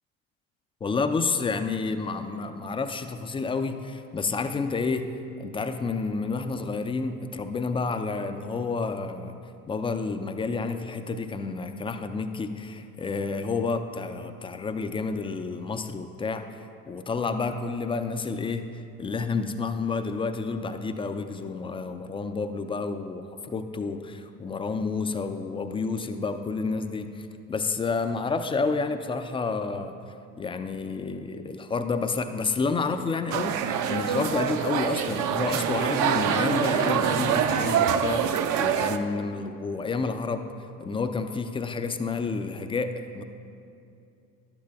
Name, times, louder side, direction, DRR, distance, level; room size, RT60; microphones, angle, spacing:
voice 1, 0.8-5.1 5.4-9.3 9.7-16.5 16.9-29.9 30.4-40.5 40.8-43.2, left 4 dB, 15° left, 8 dB, 0.3 m, -30 dB
sound 1, 33.3-39.0, right 8 dB, 45° right, 0.6 m, -25 dB
11.5 x 8.7 x 2.3 m, 2.6 s
hypercardioid pair, 70°, 43 cm